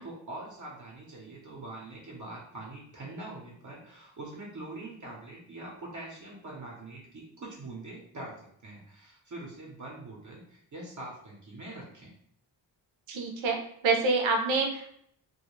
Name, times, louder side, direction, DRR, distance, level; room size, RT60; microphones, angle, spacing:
voice 1, 0.0-12.1, right 2 dB, 40° right, -3 dB, 0.7 m, -43 dB
voice 2, 13.1-14.9, right 3 dB, 85° right, 3 dB, 0.6 m, -27 dB
2.2 x 2.1 x 3.0 m, 0.67 s
cardioid pair, 70°, 45 cm